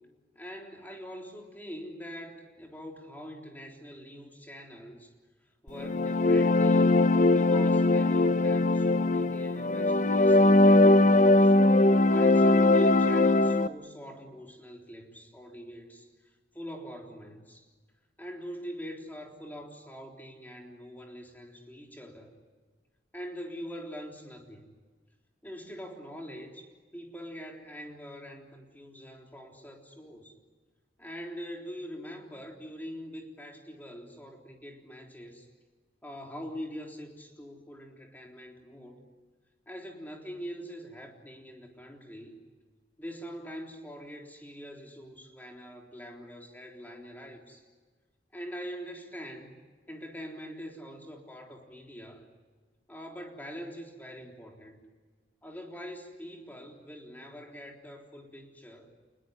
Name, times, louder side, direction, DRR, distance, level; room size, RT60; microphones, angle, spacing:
voice 1, 0.4-5.1 5.6-7.0 7.3-11.5 12.0-17.7 18.2-22.3 23.1-24.7 25.4-26.7 26.9-30.3 31.0-35.5 36.0-39.0 39.7-42.4 43.0-47.7 48.3-49.5 49.9-52.3 52.9-54.8 55.4-58.9, equal, 10° left, 1 dB, 3.7 m, -43 dB
sound 1, 5.8-13.7, left 2 dB, 45° left, 0.8 m, -21 dB
28.0 x 20.5 x 9.6 m, 1.4 s
head